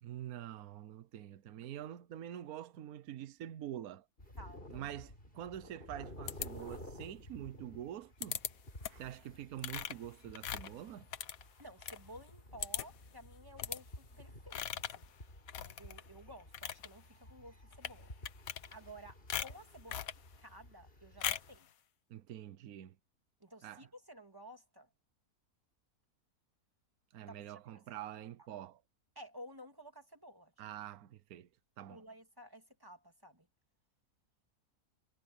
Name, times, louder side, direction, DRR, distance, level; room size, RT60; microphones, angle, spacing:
voice 1, 0.0-4.0 4.7-8.4 8.8-11.1 22.1-23.0 23.6-23.9 27.1-28.8 30.6-31.5 31.8-32.0, right 11 dB, 75° right, 1.3 m, -46 dB
sound 1, 4.2-21.6, left 1 dB, 35° left, 6.2 m, -54 dB
voice 2, 4.4-5.0 11.6-15.0 15.6-18.1 18.7-20.1 20.4-21.7 23.4-24.9 27.3-27.6 28.0-28.1 29.2-30.5 31.9-33.5, equal, 15° right, 2.2 m, -54 dB
sound 2, 6.3-7.0 8.2-8.5 8.8-9.1 9.6-12.0 12.3-12.4 12.6-13.1 13.6-13.8 14.5-15.0 15.5-16.0 16.4-16.9 17.7-18.0 18.2-19.0 19.3-20.2 21.2-21.6, left 9 dB, 70° left, 1.3 m, -40 dB
omnidirectional pair, 1.6 m